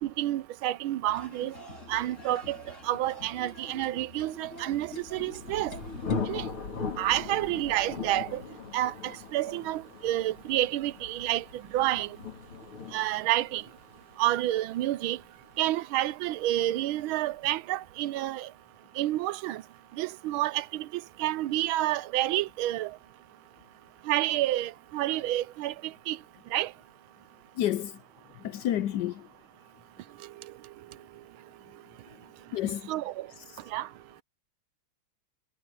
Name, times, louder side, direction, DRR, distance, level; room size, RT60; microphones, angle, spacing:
voice 1, 0.0-1.5 1.9-2.6 2.8-5.8 6.3-6.5 7.0-8.4 8.7-11.4 11.7-12.1 12.9-13.6 14.2-15.2 15.6-18.5 19.0-19.6 20.0-20.9 21.2-22.9 24.1-25.7 26.1-26.2 26.5-26.7 32.9-33.3 33.7-33.9, right 14 dB, 80° right, 1.4 m, -29 dB
sound 1, 1.1-6.4, left 1 dB, 35° left, 3.1 m, -46 dB
Thunder, 4.7-16.3, left 5 dB, 90° left, 3.5 m, -39 dB
voice 2, 27.6-27.9 28.4-29.3 32.5-32.9, left 11 dB, 70° left, 1.0 m, -29 dB
omnidirectional pair, 2.3 m